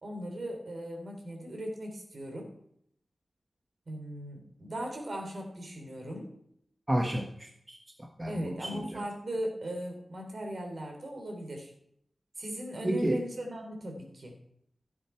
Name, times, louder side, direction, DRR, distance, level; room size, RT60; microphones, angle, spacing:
voice 1, 0.0-2.5 3.9-6.3 8.2-11.7 12.4-14.4, equal, 60° right, 3 dB, 3.5 m, -38 dB
voice 2, 6.9-9.0 12.8-13.2, right 1 dB, 25° right, 3 dB, 1.4 m, -32 dB
15.0 x 8.5 x 4.6 m, 0.71 s
wide cardioid pair, 70°, 0 cm